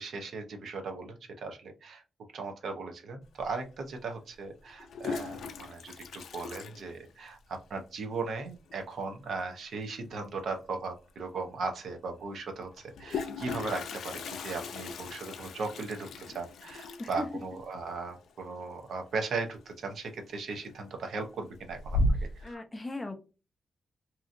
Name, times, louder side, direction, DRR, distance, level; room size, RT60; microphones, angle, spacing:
voice 1, 0.0-2.0 2.3-22.0 22.4-22.6, right 4 dB, 70° right, 5 dB, 0.7 m, -37 dB
Toilet flush, 3.4-3.5 4.7-7.5 7.8-7.9 8.1-8.2 8.5-8.9 10.6-10.7 11.1-11.2 12.7-19.4 19.7-20.1 20.6-21.1 21.5-22.5, left 2 dB, 85° left, 0.4 m, -36 dB
voice 2, 22.4-23.1, left 2 dB, 15° left, 6 dB, 0.5 m, -37 dB
2.8 x 2.6 x 2.5 m, 0.31 s
wide cardioid pair, 165°, 0 cm